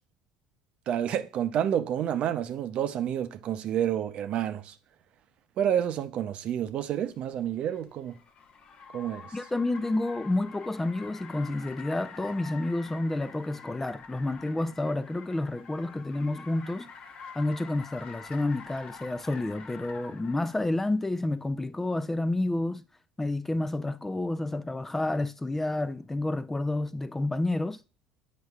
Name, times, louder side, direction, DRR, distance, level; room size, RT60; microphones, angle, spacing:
voice 1, 0.9-4.8 5.6-8.2 8.9-9.3, right 10 dB, 50° right, 0.6 m, -29 dB
Car, 6.8-20.7, left 5 dB, 50° left, 1.1 m, -47 dB
voice 2, 9.3-16.9 17.4-22.8 23.2-27.8, left 2 dB, 10° left, 0.3 m, -30 dB
7.9 x 5.0 x 2.4 m
supercardioid pair, 90°, 2 cm